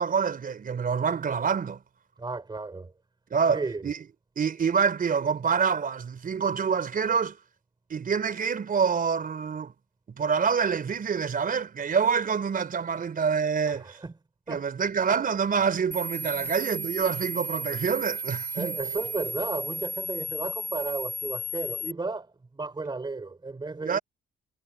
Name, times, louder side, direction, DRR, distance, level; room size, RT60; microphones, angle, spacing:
voice 1, 0.0-1.8 3.3-4.0 4.4-7.4 7.9-9.7 10.2-14.0 14.5-18.8 23.8-24.0, right 6 dB, 45° right, 4.3 m, -26 dB
voice 2, 2.2-2.9 3.5-3.8 13.7-14.1 14.5-14.6 16.3-16.5 18.5-24.0, right 3 dB, 20° right, 3.4 m, -34 dB
sound 1, 15.9-21.9, right 1 dB, 10° left, 1.5 m, -34 dB
cardioid pair, 90°, 20 cm